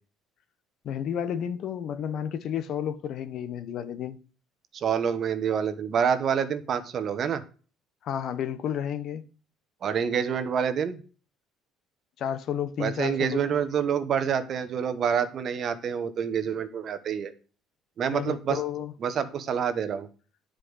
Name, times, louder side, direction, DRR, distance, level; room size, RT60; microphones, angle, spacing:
voice 1, 0.8-4.2 8.0-9.2 12.2-13.7 18.1-18.9, left 9 dB, 50° left, 1.1 m, -31 dB
voice 2, 4.7-7.4 9.8-11.0 12.8-17.3 18.0-18.6 19.0-20.1, right 7 dB, 40° right, 1.2 m, -27 dB
10.0 x 5.2 x 6.4 m
cardioid pair, 145°, 0 cm